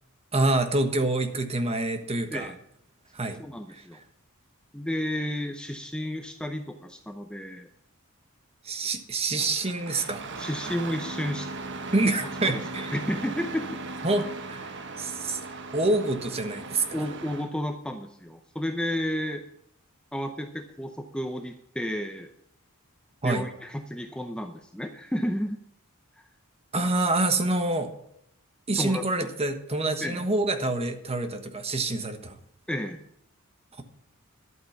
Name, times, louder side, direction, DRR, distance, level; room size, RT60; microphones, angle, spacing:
voice 1, 0.3-2.5 3.1-3.4 3.7-3.8 8.6-10.2 11.9-13.0 14.0-15.4 15.7-17.0 23.2-23.5 26.7-27.9 28.7-32.4, right 2 dB, 30° right, 7 dB, 1.3 m, -27 dB
voice 2, 3.4-4.0 4.7-7.7 10.4-11.5 12.4-13.7 16.9-19.4 20.1-22.3 23.2-25.6 26.2-26.3 28.8-29.0 30.0-30.2 32.7-33.0, equal, 5° left, 6 dB, 0.7 m, -32 dB
Engine starting, 9.4-17.5, right 3 dB, 55° right, 1.2 m, -38 dB
11.5 x 8.5 x 5.8 m, 0.73 s
head